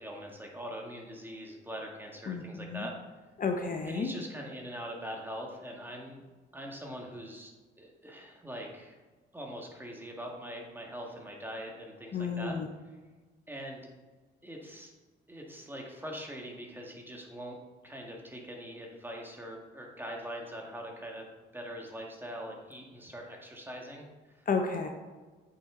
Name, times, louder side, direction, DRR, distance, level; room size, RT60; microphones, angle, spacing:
voice 1, 0.0-3.2 3.8-6.2 6.5-7.5 7.8-9.0 9.3-12.6 12.8-13.0 13.5-13.9 14.4-14.9 15.3-17.6 17.8-21.3 21.5-24.5, equal, 10° right, 0 dB, 1.8 m, -42 dB
voice 2, 2.3-2.8 3.4-4.1 12.1-12.7 24.5-24.9, left 5 dB, 45° left, 4 dB, 0.9 m, -32 dB
8.6 x 5.9 x 3.9 m, 1.3 s
cardioid pair, 90°, 20 cm